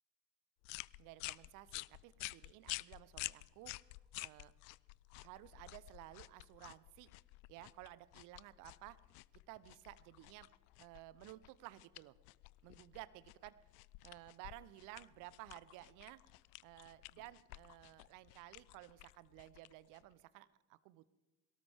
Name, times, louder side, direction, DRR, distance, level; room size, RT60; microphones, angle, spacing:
sound 1, 0.6-20.2, left 24 dB, 60° left, 0.5 m, -51 dB
voice 1, 1.0-3.7 4.2-4.5 5.2-7.1 7.5-9.0 9.5-10.5 10.8-12.1 12.6-13.5 14.0-16.2 16.6-21.1, right 17 dB, 60° right, 17 dB, 0.9 m, -55 dB
22.0 x 18.0 x 3.6 m, 1.2 s
figure-of-eight pair, 55°, 35 cm